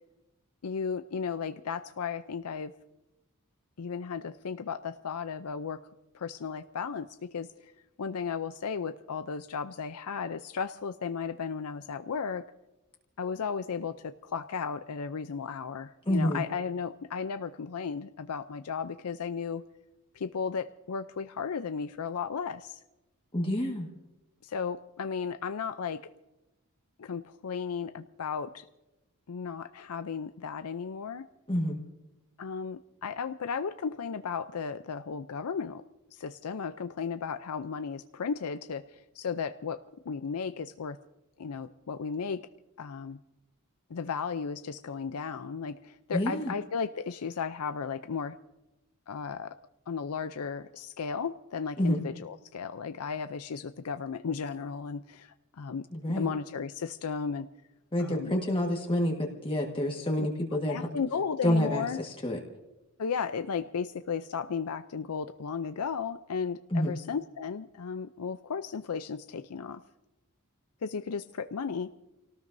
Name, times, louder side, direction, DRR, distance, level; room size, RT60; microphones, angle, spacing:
voice 1, 0.6-2.7 3.8-5.8 6.1-7.7 8.0-12.4 13.2-19.6 20.1-22.8 24.4-26.1 27.0-28.7 29.3-31.2 32.4-35.8 36.1-41.0 41.4-42.4 42.8-43.2 43.9-48.4 49.1-49.6 49.9-57.5 58.0-58.4 60.2-60.3 60.7-62.0 63.0-69.8 70.8-71.9, left 6 dB, 80° left, 10 dB, 0.5 m, -35 dB
voice 2, 16.1-16.4 23.3-23.9 31.5-31.8 46.1-46.5 51.8-52.0 55.9-56.3 57.9-60.9 61.4-62.4 66.7-66.9, left 1 dB, 25° left, -1 dB, 1.5 m, -28 dB
29.0 x 18.5 x 2.7 m, 1.0 s
head